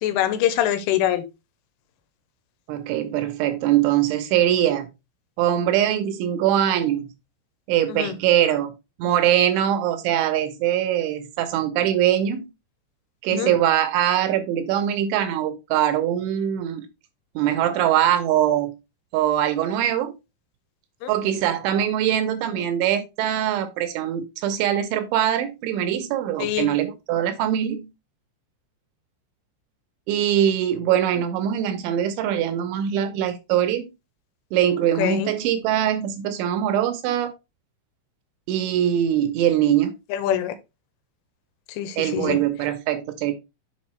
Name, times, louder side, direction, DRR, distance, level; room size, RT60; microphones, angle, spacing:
voice 1, 0.0-1.2 7.9-8.2 13.3-13.5 21.0-21.1 26.4-26.7 35.0-35.3 40.1-40.5 41.7-42.4, left 11 dB, 85° left, 3.2 m, -24 dB
voice 2, 2.7-4.9 5.4-7.1 7.7-8.7 9.0-12.5 13.2-16.9 17.4-18.7 19.1-20.1 21.1-27.9 30.1-33.9 34.5-37.3 38.5-39.9 42.0-43.3, right 11 dB, 80° right, 3.0 m, -22 dB
7.2 x 5.2 x 3.1 m
omnidirectional pair, 5.7 m